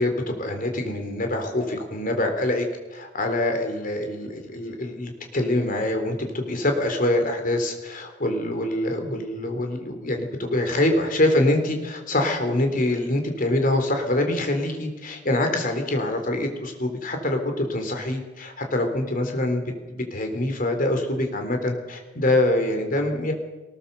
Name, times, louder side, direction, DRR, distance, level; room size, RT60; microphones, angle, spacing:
voice 1, 0.0-2.7 2.9-19.6 19.9-23.3, left 1 dB, 45° left, 5 dB, 3.6 m, -25 dB
19.5 x 19.0 x 6.9 m, 1.2 s
head